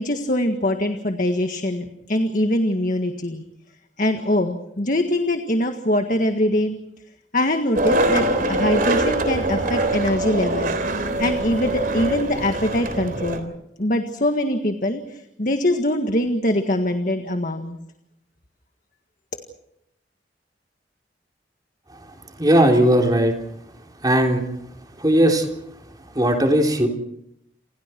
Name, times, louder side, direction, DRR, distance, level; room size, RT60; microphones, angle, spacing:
voice 1, 0.0-3.4 4.0-6.8 7.3-17.8, left 1 dB, 45° left, 5 dB, 1.7 m, -23 dB
Skateboard, 7.8-13.4, right 2 dB, 50° right, 3.6 m, -23 dB
voice 2, 22.4-23.3 24.0-24.4 25.0-25.5 26.2-26.9, right 1 dB, 20° right, 2 dB, 3.7 m, -17 dB
30.0 x 27.5 x 4.6 m, 0.80 s
head